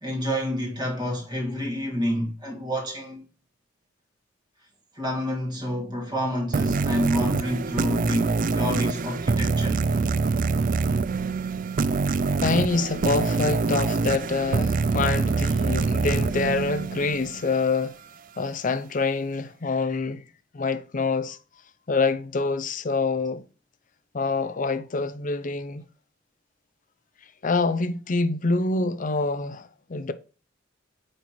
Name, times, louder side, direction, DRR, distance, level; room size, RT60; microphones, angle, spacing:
voice 1, 0.0-3.2 4.9-9.9, equal, 25° right, 1.8 m, -29 dB
sound 1, 6.5-17.7, right 4 dB, 45° right, 0.4 m, -25 dB
voice 2, 12.4-17.9 18.4-20.2 20.5-21.4 21.9-23.4 24.1-25.8 27.4-30.1, left 3 dB, 45° left, 0.6 m, -26 dB
9.4 x 4.4 x 3.0 m
head